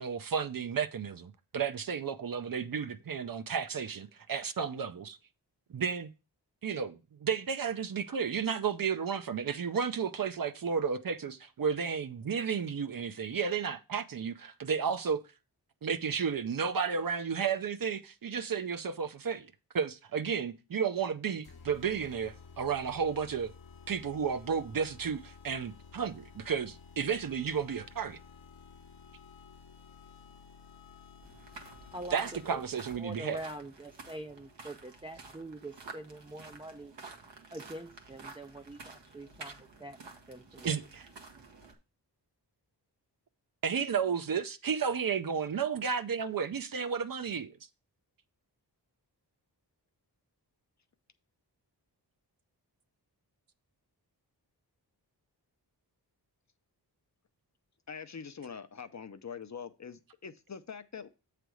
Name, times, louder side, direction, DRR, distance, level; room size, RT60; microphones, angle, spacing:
voice 1, 0.0-5.2 5.7-6.1 6.6-15.2 15.8-23.5 23.9-28.2 32.1-33.4 40.6-41.1 43.6-47.5, right 6 dB, 55° right, 0.6 m, -32 dB
sound 1, 21.4-32.8, left 5 dB, 60° left, 0.9 m, -53 dB
sound 2, 31.2-41.7, right 3 dB, 85° right, 1.2 m, -51 dB
voice 2, 31.9-32.2 32.5-32.6 33.0-36.9 37.5-40.0 40.3-40.7, right 1 dB, 15° right, 0.4 m, -44 dB
voice 3, 57.9-61.1, left 6 dB, 40° left, 0.6 m, -44 dB
8.0 x 3.4 x 6.1 m
wide cardioid pair, 110°, 42 cm